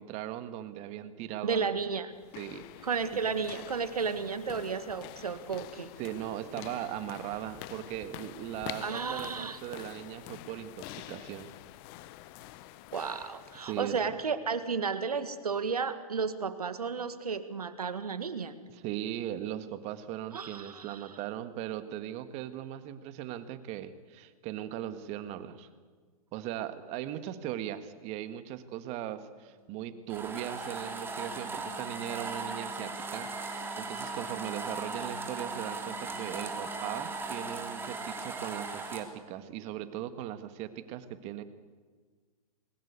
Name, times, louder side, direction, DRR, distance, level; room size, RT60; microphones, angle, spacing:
voice 1, 0.0-1.7 2.3-3.3 6.0-11.5 13.6-14.0 18.7-25.7 26.3-41.4, right 12 dB, 35° right, 11 dB, 1.6 m, -39 dB
voice 2, 1.4-2.1 2.8-5.9 8.8-9.6 12.9-18.5 20.3-21.0, right 5 dB, 85° right, 11 dB, 1.8 m, -33 dB
sound 1, 2.1-14.1, left 15 dB, 40° left, 0.9 m, -47 dB
sound 2, 29.4-39.5, left 2 dB, 90° left, 2.7 m, -51 dB
sound 3, 30.1-39.0, right 3 dB, 10° right, 3.0 m, -38 dB
21.0 x 19.5 x 8.3 m, 1.5 s
hypercardioid pair, 120°, 19 cm